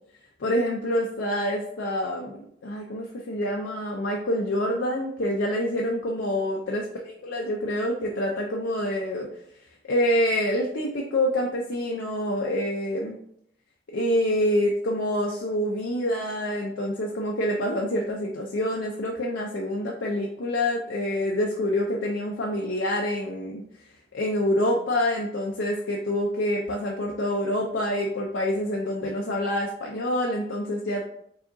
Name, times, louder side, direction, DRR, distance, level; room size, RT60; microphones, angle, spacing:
voice 1, 0.4-9.3 9.9-13.2 13.9-23.6 24.1-31.0, left 1 dB, 85° left, -1 dB, 0.5 m, -26 dB
4.7 x 2.8 x 2.6 m, 0.71 s
head